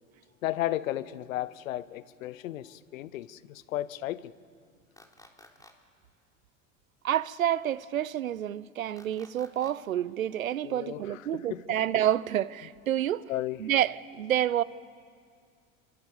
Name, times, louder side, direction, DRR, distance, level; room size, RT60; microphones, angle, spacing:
voice 1, 0.4-4.3 10.6-11.0 11.3-11.6 13.3-13.6, left 14 dB, 75° left, 1.0 m, -34 dB
sound 1, 5.0-5.7 9.0-9.7, left 1 dB, 10° left, 3.8 m, -53 dB
voice 2, 7.0-13.3 13.6-14.6, right 11 dB, 90° right, 0.8 m, -28 dB
30.0 x 24.5 x 7.2 m
hypercardioid pair, 75°, 40 cm